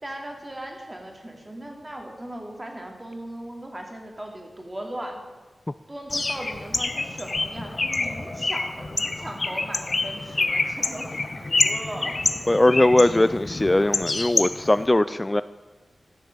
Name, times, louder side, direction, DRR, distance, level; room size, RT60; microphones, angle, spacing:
voice 1, 0.0-5.2 5.9-12.2, right 1 dB, 25° right, 2 dB, 2.6 m, -38 dB
Bird, 6.1-14.9, left 3 dB, 55° left, 0.9 m, -27 dB
voice 2, 12.5-15.4, left 1 dB, 25° left, 14 dB, 0.3 m, -20 dB
13.0 x 6.7 x 6.6 m, 1.3 s
cardioid pair, 40°, 0 cm